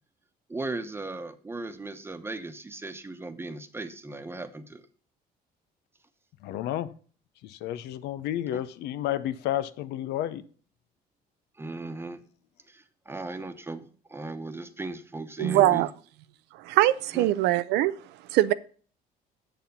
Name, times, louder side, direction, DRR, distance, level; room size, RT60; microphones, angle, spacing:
voice 1, 0.5-4.9 8.5-8.6 11.5-12.2 12.7-15.9 17.1-17.3, right 2 dB, 15° right, 1.0 m, -37 dB
voice 2, 6.4-6.9 7.4-10.4, left 12 dB, 85° left, 0.7 m, -31 dB
voice 3, 15.4-15.9 16.6-17.9 18.3-18.5, right 15 dB, 90° right, 0.5 m, -22 dB
7.5 x 7.0 x 5.4 m
cardioid pair, 110°, 17 cm